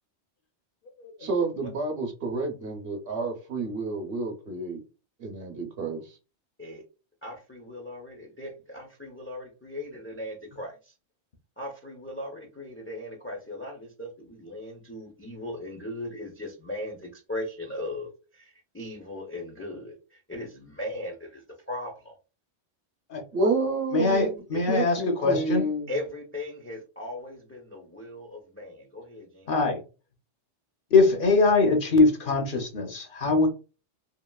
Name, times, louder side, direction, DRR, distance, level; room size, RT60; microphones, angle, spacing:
voice 1, 1.2-4.8 5.2-6.2 23.3-24.4 24.7-25.9, right 3 dB, 60° right, 4 dB, 0.9 m, -29 dB
voice 2, 7.2-10.9 11.6-22.1 24.5-24.7 25.9-29.5, left 1 dB, 20° left, 1 dB, 0.3 m, -38 dB
voice 3, 23.9-25.7 29.5-29.8 30.9-33.5, left 3 dB, 55° left, 3 dB, 0.7 m, -22 dB
2.8 x 2.8 x 2.2 m, 0.32 s
omnidirectional pair, 1.2 m